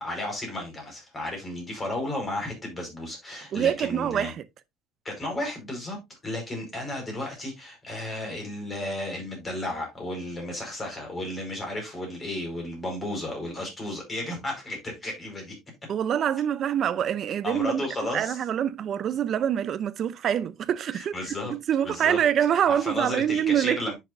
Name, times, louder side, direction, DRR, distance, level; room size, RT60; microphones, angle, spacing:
voice 1, 0.0-4.3 5.0-6.0 6.2-15.6 17.4-18.4 20.9-21.5 21.8-22.2 22.6-23.9, left 1 dB, 20° left, 4.8 m, -33 dB
voice 2, 3.5-4.4 15.9-17.8 18.1-21.1 21.5-23.8, right 9 dB, 40° right, 0.6 m, -25 dB
10.0 x 6.3 x 2.6 m
cardioid pair, 150°, 0 cm